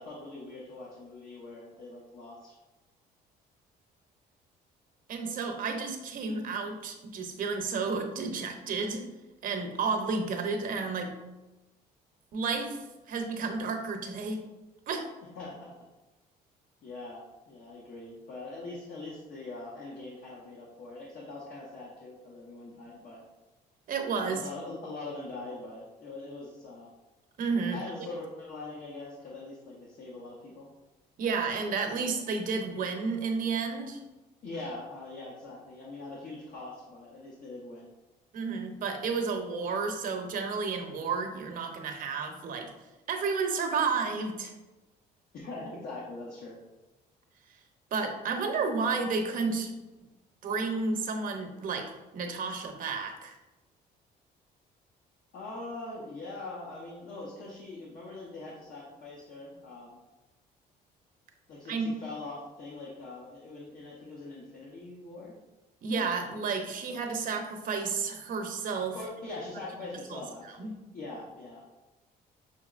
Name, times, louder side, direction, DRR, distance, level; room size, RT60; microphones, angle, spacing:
voice 1, 0.0-2.5 5.6-5.8 15.4-15.7 16.8-23.2 24.2-26.9 27.7-30.7 34.4-37.9 45.3-46.6 55.3-60.0 61.5-65.3 68.9-71.6, left 2 dB, 60° left, -4 dB, 0.8 m, -42 dB
voice 2, 5.1-9.1 9.4-11.1 12.3-12.8 13.1-14.4 14.9-15.1 23.9-24.4 27.4-27.8 31.2-34.0 38.3-42.7 43.1-44.5 47.9-49.7 50.4-53.4 61.7-61.9 65.8-69.0 70.1-70.2 70.6-70.8, right 4 dB, 55° right, 5 dB, 0.7 m, -31 dB
5.7 x 2.9 x 2.4 m, 1.1 s
cardioid pair, 110°, 17 cm